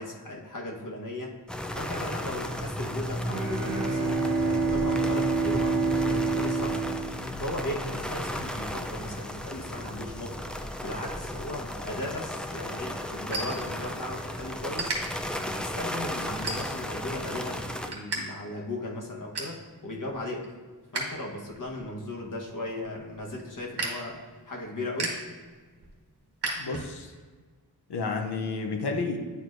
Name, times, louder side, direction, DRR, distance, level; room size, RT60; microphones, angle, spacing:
voice 1, 0.0-1.3 1.7-6.8 7.4-10.4 10.8-14.9 15.4-20.5 20.9-24.2 24.5-25.2, left 1 dB, 50° left, -1 dB, 1.2 m, -37 dB
sound 1, 1.5-17.9, left 1 dB, ahead, 0.4 m, -35 dB
Bowed string instrument, 3.2-8.0, right 4 dB, 55° right, 1.3 m, -28 dB
sound 2, 13.3-14.2 14.5-15.0 15.5-15.8 16.3-17.0 17.4-18.2 18.5-18.6 19.0-19.6 20.1-21.0 21.4-27.2, right 2 dB, 90° right, 1.3 m, -36 dB
voice 2, 26.6-27.1 27.9-29.2, left 4 dB, 85° left, 3 dB, 0.7 m, -31 dB
9.5 x 4.6 x 2.5 m, 1.5 s
wide cardioid pair, 80°, 39 cm